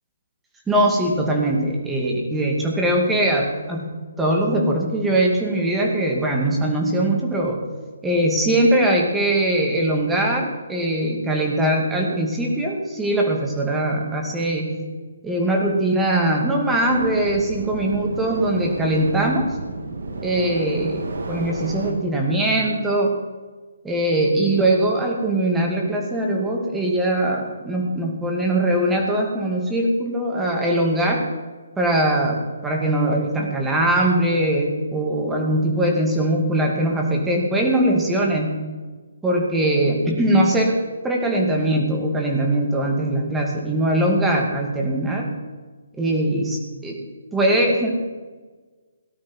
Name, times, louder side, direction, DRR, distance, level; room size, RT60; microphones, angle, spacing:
voice 1, 0.7-3.9 4.2-7.6 8.0-14.7 15.2-19.5 20.2-23.2 23.8-31.3 31.8-38.6 39.2-45.3 46.0-47.0 47.3-47.9, right 1 dB, 5° right, 0 dB, 2.4 m, -21 dB
sound 1, 16.9-21.9, right 2 dB, 65° right, 2.4 m, -31 dB
18.0 x 12.0 x 4.6 m, 1.4 s
figure-of-eight pair, 150°, 0 cm